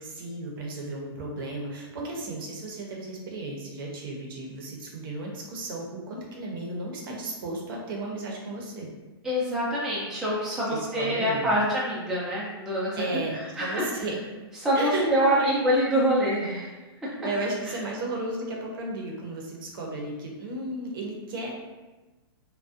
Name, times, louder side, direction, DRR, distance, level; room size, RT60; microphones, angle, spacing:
voice 1, 0.0-8.9 10.7-11.5 13.0-14.2 14.7-15.6 17.2-21.5, right 2 dB, 60° right, -1 dB, 0.6 m, -34 dB
voice 2, 9.2-13.9 14.6-16.7 17.0-17.1, equal, 5° right, -8 dB, 0.4 m, -26 dB
2.4 x 2.1 x 2.4 m, 1.2 s
hypercardioid pair, 155°, 13 cm